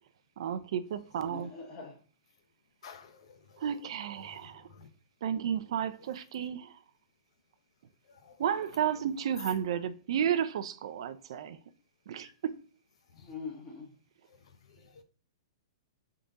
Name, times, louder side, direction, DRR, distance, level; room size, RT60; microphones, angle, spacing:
voice 1, 0.4-1.5 3.6-4.7 5.2-6.8 8.4-11.6 12.1-12.6, right 9 dB, 60° right, 0.5 m, -32 dB
voice 2, 1.2-2.0 5.5-5.6 13.1-13.9, left 4 dB, 20° left, 1.5 m, -43 dB
voice 3, 2.8-3.8 4.2-4.9 8.1-8.4 12.2-12.3 13.1-13.3 14.3-14.4 14.7-15.0, left 6 dB, 65° left, 0.9 m, -54 dB
3.7 x 3.6 x 4.0 m
hypercardioid pair, 155°, 3 cm